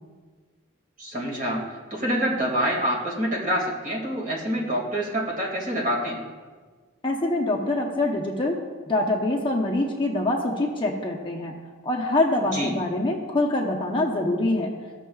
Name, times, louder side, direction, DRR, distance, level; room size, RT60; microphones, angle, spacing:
voice 1, 1.0-1.6 1.9-6.2 12.5-12.7, equal, 40° right, -3 dB, 2.1 m, -26 dB
voice 2, 7.0-8.6 8.9-11.5 11.8-14.7, left 2 dB, 25° left, -1 dB, 0.8 m, -24 dB
15.0 x 6.5 x 2.3 m, 1.5 s
head